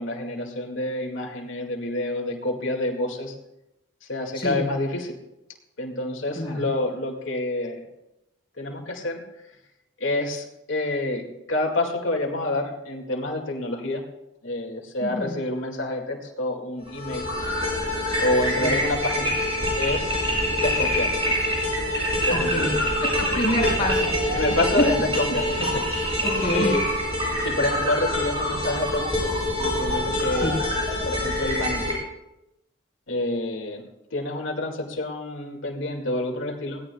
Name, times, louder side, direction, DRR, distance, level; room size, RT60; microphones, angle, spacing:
voice 1, 0.0-3.3 4.1-5.2 5.8-7.8 8.6-9.2 10.0-14.0 14.4-17.3 18.2-19.4 19.8-20.1 20.6-21.1 22.3-22.8 23.6-23.7 24.3-26.2 26.5-26.8 27.4-29.3 29.6-30.6 30.9-32.0 33.1-33.8 34.1-36.8, left 2 dB, 75° left, 2 dB, 2.1 m, -28 dB
voice 2, 6.4-6.7 15.0-15.3 18.6-18.8 22.3-22.7 23.0-24.4 24.8-24.9 26.2-26.7 30.3-30.5, left 1 dB, 25° left, -6 dB, 5.2 m, -27 dB
sound 1, 16.9-31.9, left 1 dB, 25° right, 6.8 m, -25 dB
21.5 x 16.5 x 2.3 m, 0.90 s
head